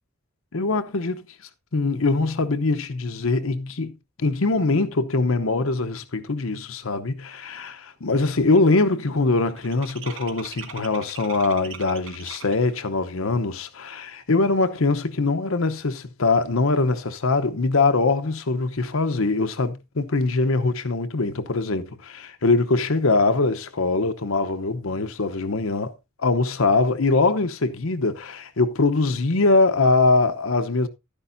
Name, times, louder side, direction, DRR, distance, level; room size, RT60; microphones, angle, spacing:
voice 1, 0.5-1.2 1.7-3.9 4.2-25.9 26.2-30.9, left 3 dB, 65° left, 0.8 m, -22 dB
sound 1, 7.5-7.9 8.1-12.8, right 7 dB, 60° right, 1.4 m, -42 dB
12.0 x 10.0 x 2.6 m
head